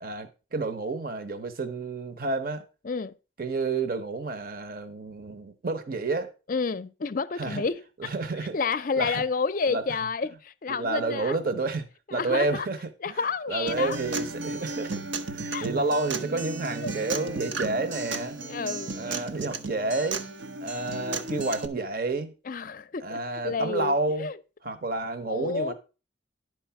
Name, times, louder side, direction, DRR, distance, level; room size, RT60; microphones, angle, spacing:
voice 1, 0.0-2.7 3.4-6.3 7.4-7.6 8.0-8.6 9.0-9.2 9.7-9.8 10.7-12.8 13.1-13.2 13.5-18.4 19.0-20.2 20.6-22.3 23.0-24.3 24.6-25.7, right 3 dB, 50° right, 0.9 m, -30 dB
voice 2, 6.5-8.1 8.5-11.4 12.1-12.7 13.0-14.0 15.5-15.7 16.8-16.9 18.5-19.2 22.5-24.4 25.3-25.7, left 5 dB, 45° left, 0.5 m, -30 dB
Acoustic guitar, 13.7-21.7, right 3 dB, 85° right, 1.0 m, -34 dB
11.0 x 4.7 x 5.8 m
head